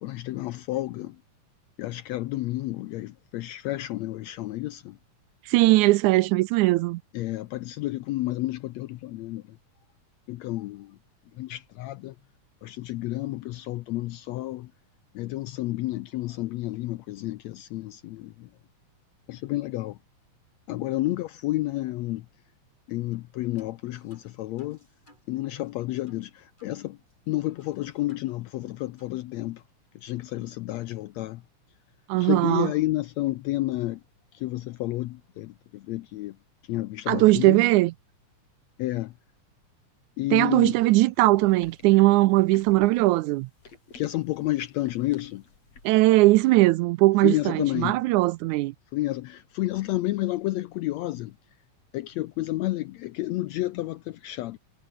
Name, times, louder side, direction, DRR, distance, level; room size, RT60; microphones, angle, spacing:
voice 1, 0.0-1.2 1.8-5.0 7.1-9.6 10.3-11.0 11.4-12.1 12.6-14.7 15.1-18.5 19.3-20.0 20.7-22.3 22.9-24.8 25.3-27.0 27.3-29.6 29.9-31.4 32.2-34.0 34.3-36.4 36.7-37.6 38.8-39.1 40.2-40.8 43.9-45.4 47.2-48.0 48.9-51.3 51.9-54.6, left 17 dB, 80° left, 1.6 m, -30 dB
voice 2, 5.5-7.0 32.1-32.7 37.1-37.9 40.3-43.5 45.9-48.7, right 19 dB, 80° right, 1.9 m, -20 dB
sound 1, 23.1-23.3 23.6-26.8 27.1-27.2 27.6-28.7 29.0-29.2, left 1 dB, 15° left, 7.9 m, -62 dB
sound 2, 41.3-46.1, left 4 dB, 55° left, 5.9 m, -50 dB
omnidirectional pair, 3.7 m